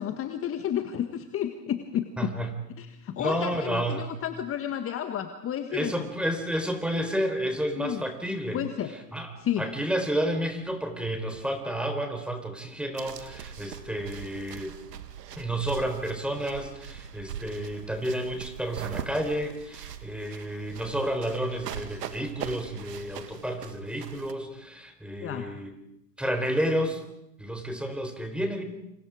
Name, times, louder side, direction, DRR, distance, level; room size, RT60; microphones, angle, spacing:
voice 1, 0.0-2.3 2.8-5.9 7.8-8.0 8.5-8.9 9.4-9.7 25.2-25.4, left 10 dB, 25° left, 7 dB, 1.7 m, -31 dB
voice 2, 2.2-2.5 3.2-4.1 5.7-8.6 9.1-9.3 9.6-14.8 15.4-25.7 26.2-27.0 27.4-28.6, right 1 dB, ahead, 6 dB, 4.1 m, -30 dB
sound 1, 13.0-24.3, right 8 dB, 70° right, 2.2 m, -41 dB
29.0 x 26.5 x 5.1 m, 0.83 s
hypercardioid pair, 100°, 49 cm